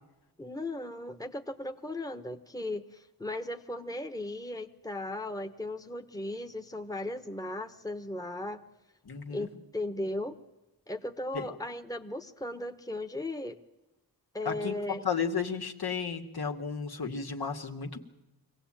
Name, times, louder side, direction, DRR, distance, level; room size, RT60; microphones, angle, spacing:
voice 1, 0.4-8.6 9.3-10.4 10.9-13.6 14.3-15.0, left 1 dB, 10° left, 6 dB, 1.2 m, -37 dB
voice 2, 9.1-9.5 11.3-11.5 14.5-18.0, left 6 dB, 70° left, 3 dB, 2.2 m, -33 dB
24.5 x 17.0 x 8.9 m, 1.0 s
wide cardioid pair, 80°, 39 cm